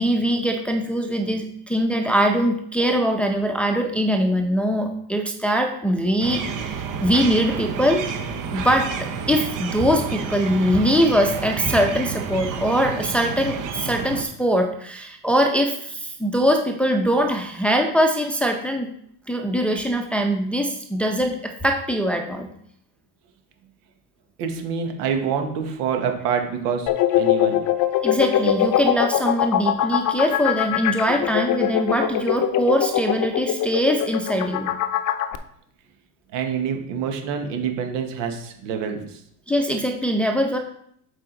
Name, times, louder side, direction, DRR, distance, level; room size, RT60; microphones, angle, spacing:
voice 1, 0.0-6.4 6.7-8.0 8.5-18.9 19.3-22.5 28.0-34.7 39.5-40.6, equal, 5° left, 2 dB, 0.7 m, -22 dB
sound 1, 6.2-14.2, right 6 dB, 45° right, 1.0 m, -30 dB
voice 2, 24.4-26.9 27.2-27.6 36.3-39.2, right 6 dB, 70° right, 5 dB, 1.6 m, -26 dB
sound 2, 26.9-35.3, left 11 dB, 45° left, 0.7 m, -22 dB
7.6 x 4.9 x 3.9 m, 0.68 s
supercardioid pair, 115°, 45 cm